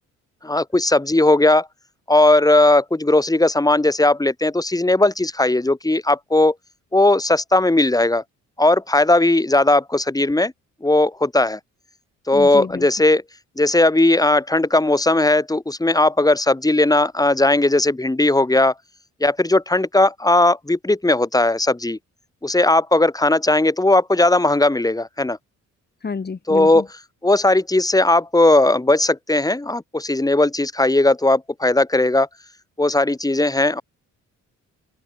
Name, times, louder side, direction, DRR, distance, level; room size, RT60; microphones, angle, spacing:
voice 1, 0.4-1.7 2.1-6.5 6.9-8.2 8.6-10.5 10.8-11.6 12.3-13.2 13.6-18.7 19.2-22.0 22.4-25.4 26.5-26.8 27.2-32.3 32.8-33.8, left 2 dB, 10° left, 4.5 m, -17 dB
voice 2, 12.3-12.9 26.0-26.9, left 5 dB, 35° left, 5.6 m, -29 dB
cardioid pair, 90°, 30 cm